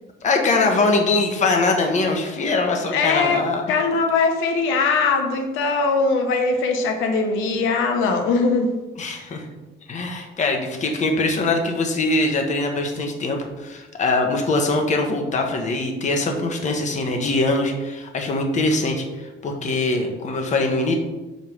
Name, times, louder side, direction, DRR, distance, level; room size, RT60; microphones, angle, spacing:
voice 1, 0.2-3.6 9.0-9.5 9.9-20.9, left 2 dB, 35° left, 3 dB, 1.1 m, -22 dB
voice 2, 2.9-3.4 3.7-8.7, left 4 dB, 90° left, 5 dB, 0.9 m, -21 dB
5.3 x 4.7 x 6.2 m, 1.1 s
cardioid pair, 140°, 20 cm